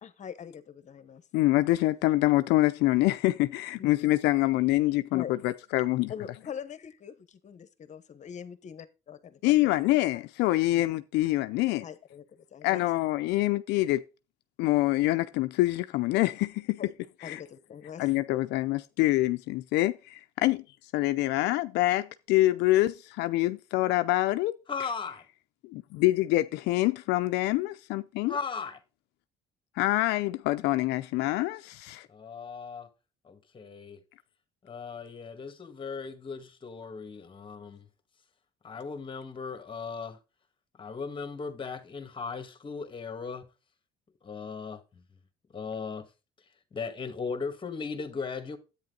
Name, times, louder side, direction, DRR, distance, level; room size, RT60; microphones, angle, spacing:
voice 1, 0.0-1.2 3.8-4.2 5.1-5.3 6.1-9.7 10.1-10.2 11.8-12.9 16.8-16.9 17.2-18.2, left 8 dB, 45° left, 1.2 m, -43 dB
voice 2, 1.3-6.1 9.4-11.8 12.6-14.0 14.6-16.8 17.2-17.4 18.0-20.6 20.9-24.6 25.6-28.4 29.8-32.1, left 17 dB, 90° left, 0.5 m, -26 dB
voice 3, 24.7-25.2 28.3-28.8 32.1-32.9 33.2-34.0 34.6-37.9 38.6-40.2 40.8-43.5 44.2-45.0 45.5-46.1 46.7-48.6, left 5 dB, 30° left, 1.8 m, -37 dB
10.5 x 8.9 x 3.9 m
cardioid pair, 110°, 17 cm